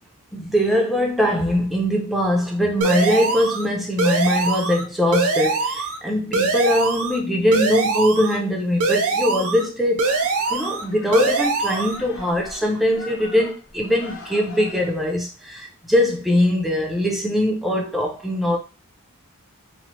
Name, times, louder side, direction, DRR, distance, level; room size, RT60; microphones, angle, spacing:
voice 1, 0.3-10.1 10.5-18.6, left 1 dB, ahead, 0.5 m, -21 dB
sound 1, 2.8-3.7 4.0-4.8 5.1-6.0 6.3-7.2 7.5-8.4 8.8-9.7 10.0-10.8 11.1-12.0, right 3 dB, 65° right, 0.5 m, -22 dB
sound 2, 10.0-15.1, left 3 dB, 60° left, 0.8 m, -41 dB
2.7 x 2.0 x 2.9 m
head